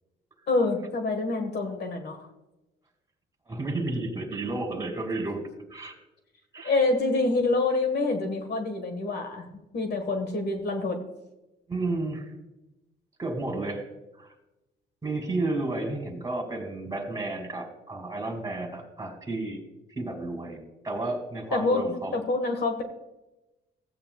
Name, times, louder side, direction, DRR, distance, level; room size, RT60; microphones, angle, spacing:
voice 1, 0.5-2.2 6.6-9.5 9.7-11.0 21.5-22.8, left 3 dB, 55° left, 5 dB, 1.5 m, -26 dB
voice 2, 3.5-6.0 6.5-6.7 11.7-12.3 13.2-13.8 14.2-14.3 15.0-19.6 20.0-22.2, right 2 dB, 15° right, 2 dB, 2.5 m, -32 dB
16.0 x 8.8 x 2.3 m, 1.0 s
cardioid pair, 90°, 20 cm